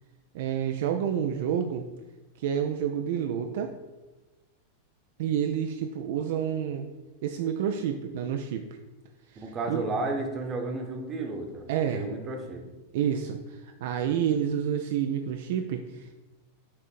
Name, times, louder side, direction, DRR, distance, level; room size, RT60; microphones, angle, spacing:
voice 1, 0.3-1.9 2.4-3.7 5.2-6.9 7.2-8.7 9.3-9.9 11.7-12.1 12.9-16.1, right 8 dB, 55° right, 5 dB, 0.4 m, -29 dB
voice 2, 9.4-11.6 11.9-12.6, right 2 dB, 25° right, 4 dB, 1.0 m, -32 dB
6.3 x 3.6 x 4.2 m, 1.1 s
figure-of-eight pair, 90°, 0 cm